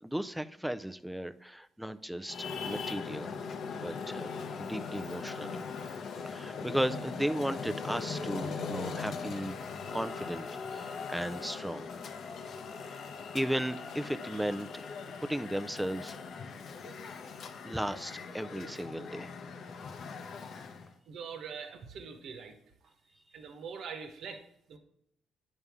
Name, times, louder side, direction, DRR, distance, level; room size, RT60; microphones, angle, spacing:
voice 1, 0.0-3.4 3.8-4.3 4.6-5.6 6.2-9.6 9.9-11.9 12.9-13.1 13.3-14.9 15.2-16.1 17.6-19.3, right 1 dB, 5° right, 11 dB, 0.5 m, -35 dB
Traffic noise roadway noise, 2.3-20.9, left 5 dB, 65° left, 0.8 m, -40 dB
voice 2, 21.1-22.6 23.3-24.8, right 6 dB, 70° right, 6 dB, 1.2 m, -43 dB
9.5 x 5.4 x 3.6 m, 0.77 s
cardioid pair, 90°, 0 cm